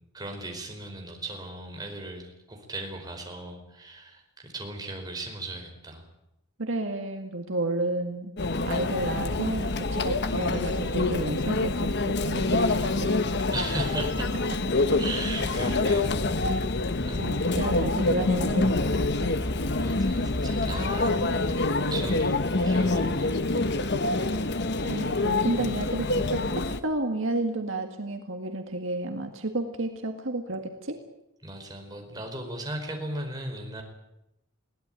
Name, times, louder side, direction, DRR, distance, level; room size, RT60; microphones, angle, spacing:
voice 1, 0.1-6.1 13.5-14.3 15.0-16.7 17.0-17.4 19.8-23.5 24.8-25.3 31.4-33.8, right 1 dB, 20° right, 2 dB, 4.8 m, -37 dB
voice 2, 6.6-8.3 8.7-13.2 17.2-19.4 24.8-31.0, right 2 dB, 60° right, 5 dB, 1.9 m, -31 dB
Conversation / Chatter / Crowd, 8.4-26.8, left 2 dB, 50° left, 1.2 m, -26 dB
22.0 x 17.0 x 9.1 m, 0.86 s
head